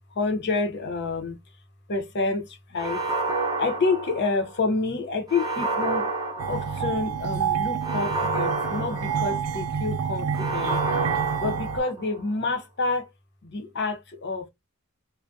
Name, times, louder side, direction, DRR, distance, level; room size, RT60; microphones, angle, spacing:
voice 1, 0.1-1.4 1.9-3.0 3.6-6.1 6.5-10.8 11.4-13.1 13.4-14.5, left 3 dB, 55° left, 0.7 m, -28 dB
sound 1, 2.8-4.6 5.3-7.1 7.8-9.7 10.3-12.2, right 3 dB, 20° right, 0.6 m, -29 dB
sound 2, 6.4-11.8, right 7 dB, 85° right, 0.3 m, -28 dB
2.3 x 2.1 x 2.5 m
head